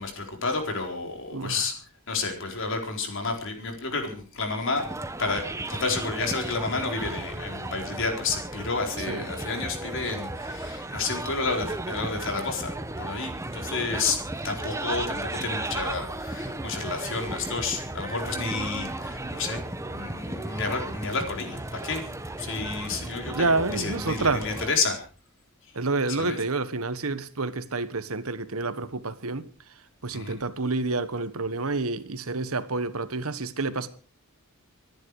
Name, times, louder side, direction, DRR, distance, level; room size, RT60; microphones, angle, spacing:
voice 1, 0.0-1.7 2.1-4.8 5.2-5.4 5.7-12.7 13.0-14.2 14.4-19.6 19.9-22.0 22.4-25.0 26.2-26.4 30.1-30.3, left 4 dB, 60° left, 4.3 m, -30 dB
voice 2, 1.3-1.6 9.1-9.3 22.9-23.0 23.3-24.5 25.7-29.5 30.0-33.9, right 3 dB, 75° right, 1.4 m, -28 dB
sound 1, 4.8-24.7, right 2 dB, 15° right, 0.9 m, -35 dB
25.5 x 10.5 x 4.9 m
head